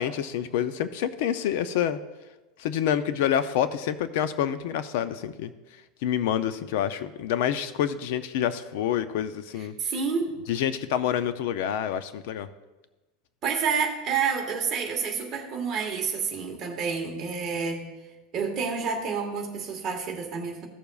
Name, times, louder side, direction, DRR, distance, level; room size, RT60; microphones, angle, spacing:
voice 1, 0.0-2.0 2.6-5.5 6.0-9.7 10.5-12.5, left 10 dB, 55° left, 12 dB, 0.4 m, -27 dB
voice 2, 9.8-10.3 13.4-17.8 18.3-20.7, right 5 dB, 25° right, 0 dB, 1.5 m, -29 dB
15.5 x 6.9 x 2.4 m, 1.1 s
supercardioid pair, 175°, 0 cm